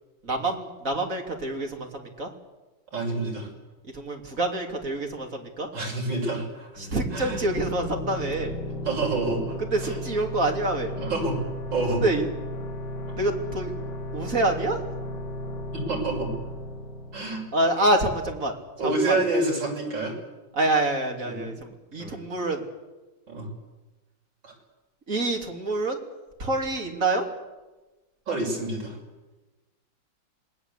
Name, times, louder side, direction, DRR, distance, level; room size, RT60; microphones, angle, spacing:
voice 1, 0.2-2.3 3.8-5.7 6.8-8.5 9.6-10.9 12.0-12.3 13.2-13.7 14.1-14.8 17.5-18.6 18.8-19.2 20.5-22.7 25.1-26.0 26.4-27.3, right 2 dB, 45° right, 3 dB, 3.4 m, -26 dB
voice 2, 2.9-3.5 5.7-7.4 8.9-9.6 9.8-10.0 11.0-11.4 11.7-12.0 15.7-16.3 17.1-17.4 18.8-20.1 21.2-21.5 22.0-22.2 23.3-23.5 24.4-24.5 28.3-29.0, right 2 dB, 75° right, -1 dB, 7.3 m, -28 dB
sound 1, 6.8-18.2, left 1 dB, 65° left, 3.4 m, -35 dB
27.0 x 19.5 x 8.4 m, 1.1 s
omnidirectional pair, 2.1 m